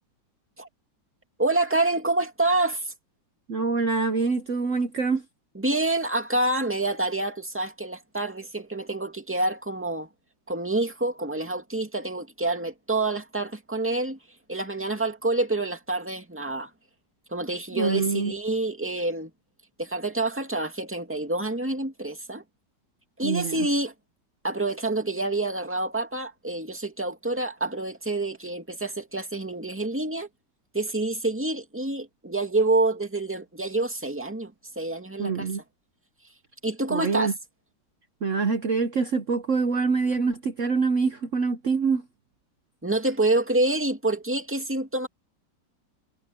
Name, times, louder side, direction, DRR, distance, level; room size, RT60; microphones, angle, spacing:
voice 1, 1.4-2.9 5.6-10.1 10.5-14.2 14.5-16.7 17.3-19.3 19.8-22.4 23.2-23.9 24.4-30.3 30.7-35.5 36.6-37.3 42.8-45.1, right 2 dB, 5° right, 2.2 m, -27 dB
voice 2, 3.5-5.2 17.8-18.3 23.2-23.7 35.2-35.6 36.9-37.3 38.2-42.1, right 4 dB, 50° right, 1.1 m, -25 dB
omnidirectional pair, 2.0 m